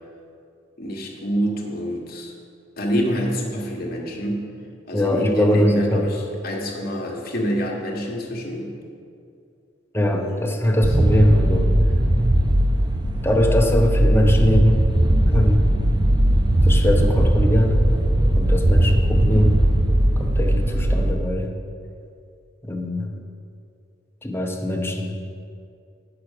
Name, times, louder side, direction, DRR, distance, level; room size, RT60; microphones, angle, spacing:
voice 1, 0.8-2.3 2.8-4.5 4.9-8.7 10.1-10.8, equal, 50° left, -1 dB, 1.3 m, -26 dB
voice 2, 4.9-6.1 9.9-11.7 13.2-14.8 15.3-15.6 16.6-17.8 18.4-19.6 20.2-21.5 22.6-23.1 24.2-25.2, left 1 dB, 10° left, 2 dB, 0.8 m, -21 dB
sound 1, 10.8-21.1, right 1 dB, 25° right, 0.5 m, -19 dB
8.5 x 6.0 x 6.5 m, 2.5 s
head